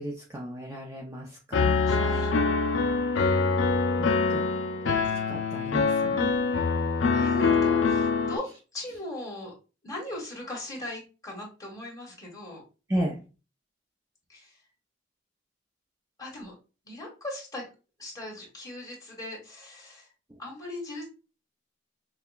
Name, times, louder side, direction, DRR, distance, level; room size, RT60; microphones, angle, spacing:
voice 1, 0.0-1.8 4.0-4.4 4.8-4.9 5.3-6.3 12.9-13.2, right 1 dB, 15° right, -1 dB, 0.5 m, -34 dB
Piano, 1.5-8.4, left 4 dB, 80° left, 0.4 m, -24 dB
voice 2, 1.9-2.3 7.1-9.5 9.8-12.6 14.3-14.6 16.2-16.5 16.8-17.7 18.0-20.1 20.4-21.1, left 1 dB, 20° left, -2 dB, 1.4 m, -39 dB
5.5 x 2.2 x 2.3 m, 0.32 s
head